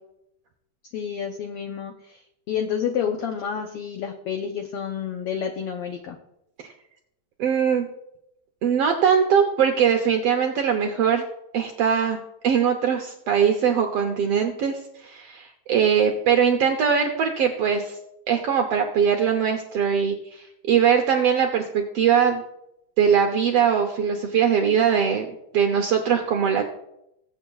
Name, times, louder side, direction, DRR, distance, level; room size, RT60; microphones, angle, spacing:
voice 1, 0.9-2.2 2.5-6.2, left 8 dB, 80° left, 4 dB, 1.3 m, -29 dB
voice 2, 7.4-7.9 8.6-11.2 11.5-18.0 18.3-22.4 23.0-26.6, right 7 dB, 75° right, 4 dB, 1.4 m, -21 dB
21.0 x 7.9 x 2.3 m, 0.82 s
omnidirectional pair, 3.6 m